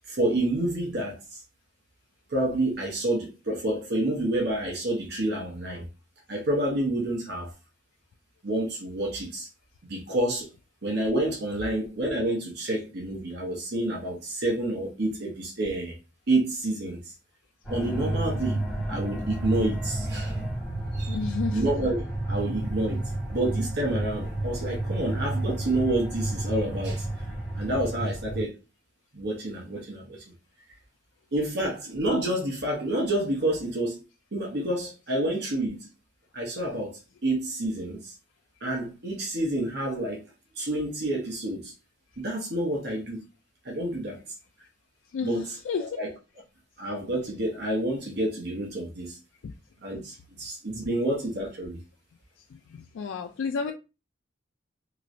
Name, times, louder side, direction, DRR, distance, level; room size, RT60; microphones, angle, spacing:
voice 1, 0.1-1.4 2.3-5.8 6.3-7.5 8.4-9.5 9.9-10.5 10.8-15.9 16.3-17.0 17.7-18.6 18.9-20.5 20.9-21.2 21.5-22.0 22.3-27.1 27.5-28.5 29.1-30.2 31.3-34.0 34.3-35.9 36.3-38.1 38.6-40.2 40.6-41.7 42.2-43.2 43.6-44.2 45.2-45.5 45.8-46.1 46.8-49.2 49.8-51.8, right 1 dB, 60° right, 0.9 m, -28 dB
sound 1, 17.6-28.4, right 1 dB, 5° right, 1.7 m, -31 dB
voice 2, 21.1-21.6 45.1-46.0 49.4-49.5 52.7-53.7, left 5 dB, 90° left, 0.3 m, -31 dB
3.0 x 3.0 x 2.6 m
head